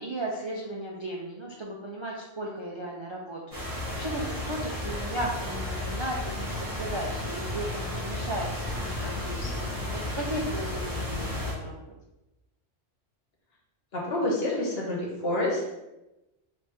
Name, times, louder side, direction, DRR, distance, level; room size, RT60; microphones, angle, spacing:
voice 1, 0.0-3.6 3.9-11.9, right 1 dB, 40° right, -3 dB, 0.4 m, -36 dB
sound 1, 3.5-11.5, left 1 dB, 15° right, 1.5 m, -33 dB
voice 2, 13.9-15.6, left 1 dB, 60° left, -3 dB, 1.3 m, -28 dB
3.5 x 3.0 x 4.2 m, 0.98 s
omnidirectional pair, 1.2 m